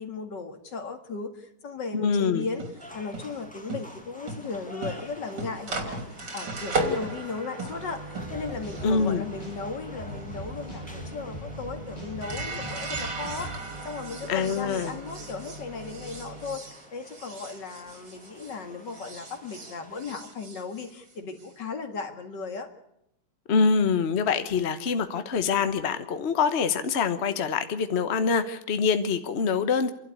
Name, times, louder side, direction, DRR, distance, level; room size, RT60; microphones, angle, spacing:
voice 1, 0.0-2.6 2.9-13.5 13.8-16.6 16.9-22.7, left 4 dB, 80° left, 5 dB, 2.7 m, -36 dB
voice 2, 1.9-2.5 8.8-9.2 14.3-14.9 23.5-29.9, left 5 dB, 45° left, 9 dB, 1.2 m, -25 dB
sound 1, 2.4-18.6 18.9-21.5, right 2 dB, 85° right, 3.8 m, -37 dB
sound 2, 2.8-20.1, equal, 5° left, 2.1 m, -50 dB
sound 3, 8.2-13.6, equal, 20° left, 8.1 m, -41 dB
29.0 x 12.0 x 8.4 m, 0.80 s
omnidirectional pair, 1.9 m